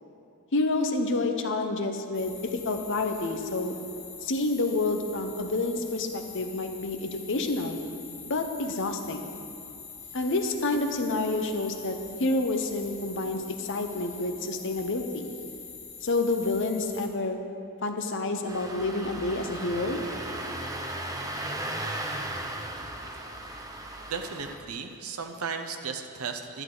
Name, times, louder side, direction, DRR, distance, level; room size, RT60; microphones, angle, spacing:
voice 1, 0.5-3.7 4.2-7.8 8.3-9.3 10.1-15.3 16.0-17.4 17.8-20.0, left 2 dB, 60° left, 5 dB, 0.8 m, -29 dB
sound 1, 2.1-17.1, left 5 dB, 30° left, 1.5 m, -45 dB
Engine starting, 18.5-24.6, right 1 dB, 15° right, 0.7 m, -36 dB
voice 2, 24.1-26.6, right 5 dB, 75° right, 6 dB, 0.7 m, -35 dB
11.0 x 11.0 x 3.9 m, 2.7 s
head